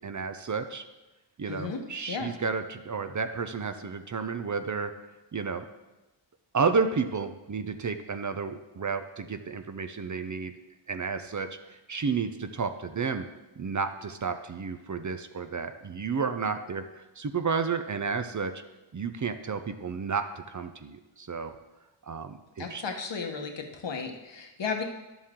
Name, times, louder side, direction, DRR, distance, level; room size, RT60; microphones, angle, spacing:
voice 1, 0.0-0.8 1.4-4.9 5.3-5.7 6.5-10.5 10.9-13.3 13.6-18.5 18.9-21.5 22.1-22.8, right 5 dB, 40° right, 8 dB, 0.6 m, -31 dB
voice 2, 1.5-1.8 2.1-2.3 22.6-24.8, left 5 dB, 60° left, 3 dB, 1.3 m, -34 dB
11.0 x 7.2 x 3.7 m, 1.1 s
cardioid pair, 70°, 48 cm